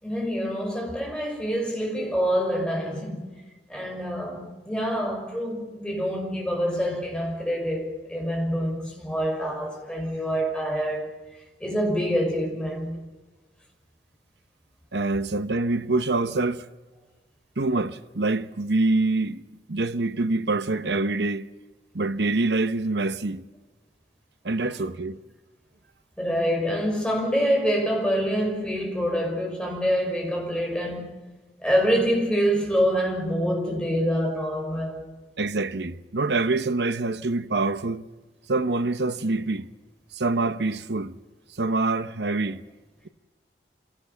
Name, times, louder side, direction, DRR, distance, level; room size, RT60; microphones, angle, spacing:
voice 1, 0.0-3.3 3.7-11.1 11.6-13.0 26.2-31.1 31.6-35.0, equal, 5° left, 5.7 m, -26 dB
voice 2, 14.9-16.7 17.6-19.4 19.7-21.5 21.9-23.4 24.4-25.2 35.4-38.0 38.5-39.7 40.1-41.1 41.6-42.6, right 3 dB, 70° right, 1.0 m, -25 dB
26.0 x 18.0 x 6.9 m
head